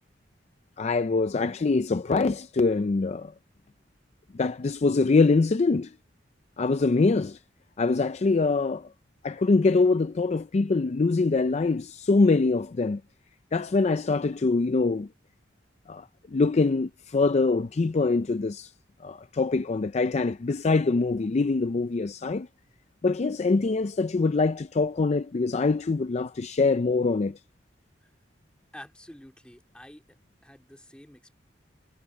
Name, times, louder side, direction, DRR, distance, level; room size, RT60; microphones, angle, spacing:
voice 1, 0.8-3.3 4.3-5.9 6.6-7.4 7.8-8.9 9.2-13.0 13.5-15.1 15.9-18.7 19.0-22.5 23.0-27.4, left 3 dB, 40° left, 0.4 m, -24 dB
voice 2, 28.7-30.2 30.4-31.3, left 1 dB, 5° left, 2.3 m, -48 dB
head